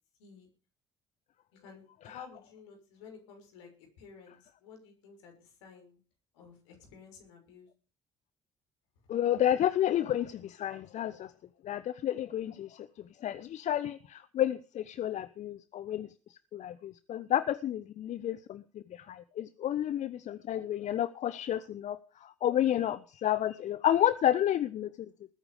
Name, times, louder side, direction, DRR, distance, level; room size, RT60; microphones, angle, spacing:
voice 1, 0.2-0.5 1.5-3.7 4.0-6.0 6.3-7.7, left 6 dB, 70° left, 4 dB, 6.4 m, -52 dB
voice 2, 9.1-11.3 11.6-12.9 13.2-16.1 16.5-24.9, left 11 dB, 50° left, 15 dB, 0.9 m, -30 dB
20.5 x 10.0 x 5.1 m, 0.35 s
figure-of-eight pair, 50°, 15 cm